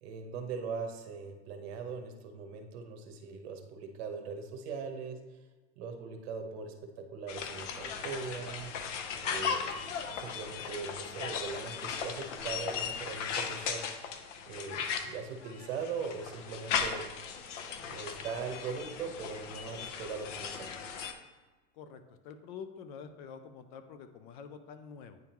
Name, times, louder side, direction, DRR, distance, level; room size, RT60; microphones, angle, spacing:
voice 1, 0.0-5.2 5.8-6.7 7.1-8.7 9.2-9.7 10.2-13.9 14.5-17.1 17.8-20.7, right 5 dB, 60° right, 5 dB, 1.0 m, -40 dB
sound 1, 7.3-21.1, left 6 dB, 90° left, 0.8 m, -37 dB
voice 2, 21.7-25.2, left 6 dB, 45° left, 10 dB, 0.4 m, -47 dB
9.3 x 3.6 x 3.0 m, 1.2 s
supercardioid pair, 150°, 36 cm